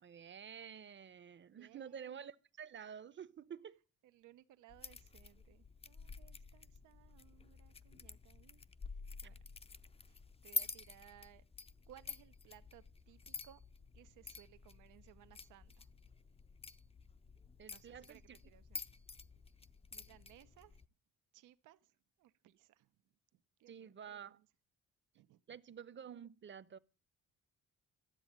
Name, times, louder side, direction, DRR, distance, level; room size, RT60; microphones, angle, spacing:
voice 1, 0.0-3.8 17.6-18.4 23.7-24.4 25.5-26.8, right 8 dB, 40° right, 0.9 m, -50 dB
voice 2, 1.5-2.3 4.0-8.6 8.9-9.4 10.1-11.4 11.9-13.6 13.9-15.9 17.7-19.0 19.9-20.8 21.3-22.9 23.3-24.5 25.1-25.6, right 13 dB, 90° right, 0.9 m, -63 dB
sound 1, 4.7-20.9, left 4 dB, 20° left, 0.6 m, -49 dB
12.5 x 7.9 x 8.8 m
cardioid pair, 90°, 30 cm